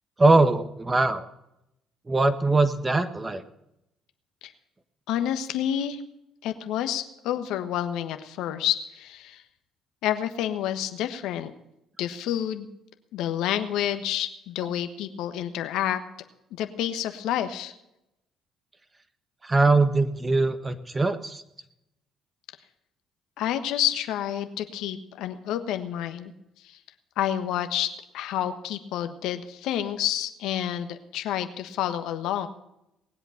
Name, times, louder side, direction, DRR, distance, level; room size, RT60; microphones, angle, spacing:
voice 1, 0.2-1.3 2.1-3.4 19.4-21.4, right 3 dB, 25° right, 10 dB, 1.5 m, -21 dB
voice 2, 5.1-6.0 6.4-9.4 10.0-11.5 12.0-12.7 13.1-16.0 16.6-17.7 23.4-26.3 26.6-26.8 27.2-27.9 28.1-32.5, left 11 dB, 75° left, 9 dB, 1.3 m, -29 dB
20.0 x 8.1 x 5.8 m, 0.86 s
supercardioid pair, 65°, 0 cm